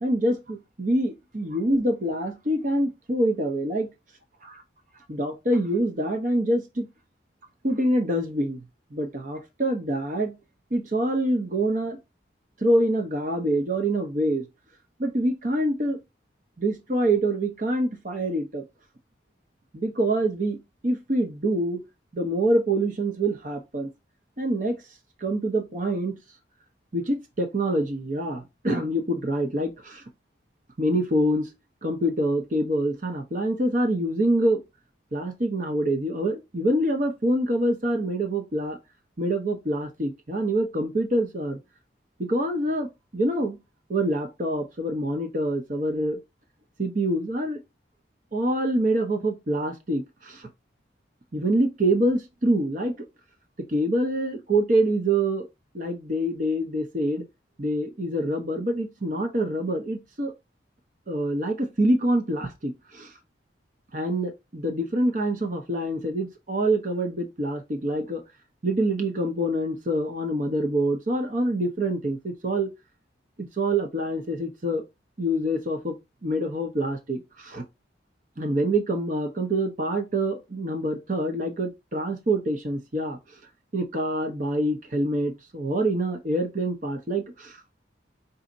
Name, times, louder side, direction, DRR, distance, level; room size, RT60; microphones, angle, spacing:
voice 1, 0.0-3.9 4.4-4.6 5.1-6.9 7.6-8.6 8.9-10.4 10.7-12.0 12.6-14.5 15.0-16.0 16.6-18.6 19.7-21.8 22.1-23.9 24.4-24.8 25.2-26.2 26.9-30.0 30.8-31.5 31.8-34.6 35.1-38.8 39.2-41.6 42.2-43.6 43.9-46.2 46.8-47.6 48.3-50.5 51.3-53.0 53.6-55.5 55.7-57.2 57.6-60.3 61.1-63.1 63.9-68.2 68.6-72.7 73.4-74.8 75.2-76.0 76.2-77.6 78.4-83.2 83.7-87.6, right 1 dB, 45° right, 0.8 m, -25 dB
4.2 x 4.1 x 2.5 m
head